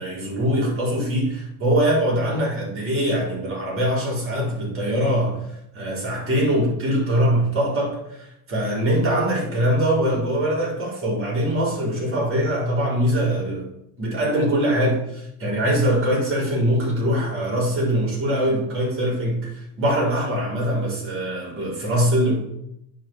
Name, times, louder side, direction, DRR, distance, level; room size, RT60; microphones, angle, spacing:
voice 1, 0.0-5.4 5.7-13.7 14.0-22.4, equal, 40° right, 4.4 m, -22 dB
8.9 x 5.2 x 7.5 m
cardioid pair, 145°, 34 cm